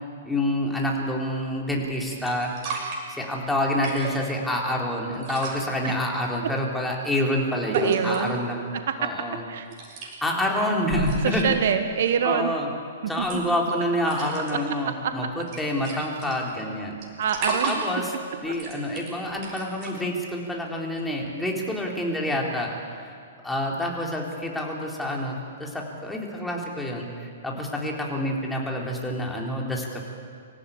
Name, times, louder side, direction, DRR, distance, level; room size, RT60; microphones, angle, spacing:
voice 1, 0.2-2.5 3.1-8.6 9.0-9.4 10.2-11.6 12.2-12.7 13.1-17.0 17.6-18.1 18.4-23.1 23.4-30.0, left 1 dB, 5° left, -2 dB, 3.8 m, -27 dB
sound 1, 1.4-1.8 2.1-3.0 3.7-4.2 5.1-5.6 7.7-8.4 9.7-10.3 10.6-11.7 13.2-13.7 14.0-14.7 15.1-15.2 15.4-16.6 17.0-18.0 18.5-19.9 20.9-21.0, right 3 dB, 35° right, 6.5 m, -32 dB
voice 2, 7.7-8.4 8.9-9.1 9.5-9.7 10.0-10.1 10.9-12.6 13.2-13.3 15.0-15.1 17.2-17.8, right 8 dB, 55° right, 8 dB, 1.3 m, -25 dB
26.0 x 15.0 x 8.7 m, 2.2 s
figure-of-eight pair, 110°, 0 cm